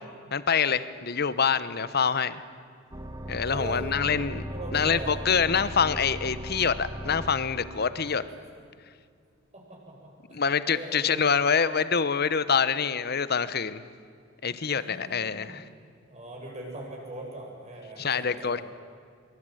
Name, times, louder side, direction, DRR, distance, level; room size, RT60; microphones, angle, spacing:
voice 1, 0.3-2.4 3.3-4.4 4.7-8.2 10.3-13.8 14.4-15.6 18.0-18.6, left 6 dB, 55° left, 14 dB, 1.0 m, -26 dB
sound 1, 2.9-8.2, equal, 20° right, 1.4 m, -37 dB
voice 2, 3.5-3.9 4.5-5.1 9.5-11.3 14.6-15.6 16.0-18.6, right 1 dB, 35° right, -1 dB, 7.6 m, -41 dB
24.0 x 23.5 x 9.2 m, 2.2 s
head